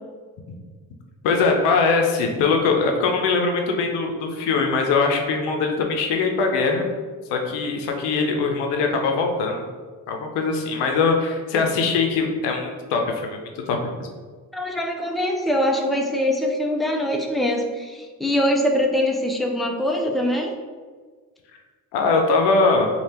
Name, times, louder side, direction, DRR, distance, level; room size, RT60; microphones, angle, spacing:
voice 1, 1.2-6.9 7.3-9.6 10.1-13.4 13.7-14.1 21.9-22.9, left 4 dB, 85° left, 2 dB, 0.7 m, -21 dB
voice 2, 14.5-20.5, equal, ahead, 2 dB, 0.6 m, -23 dB
3.3 x 2.4 x 4.2 m, 1.5 s
hypercardioid pair, 45°, 40 cm